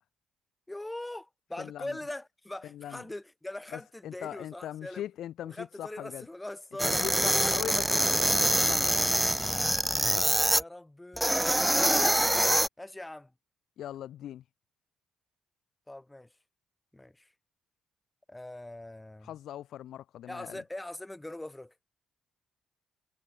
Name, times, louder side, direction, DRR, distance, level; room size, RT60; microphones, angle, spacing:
voice 1, 0.7-5.0 5.4-7.6 10.5-11.7 12.8-13.3 15.9-16.3 16.9-17.3 18.3-19.3 20.3-21.7, left 1 dB, 10° left, 6.6 m, -42 dB
voice 2, 1.6-2.0 2.6-3.0 3.7-6.3 6.8-9.3 13.8-14.4 19.2-20.6, left 11 dB, 70° left, 3.3 m, -40 dB
sound 1, 6.8-10.6 11.2-12.7, right 1 dB, 5° right, 0.6 m, -25 dB
supercardioid pair, 65°, 0 cm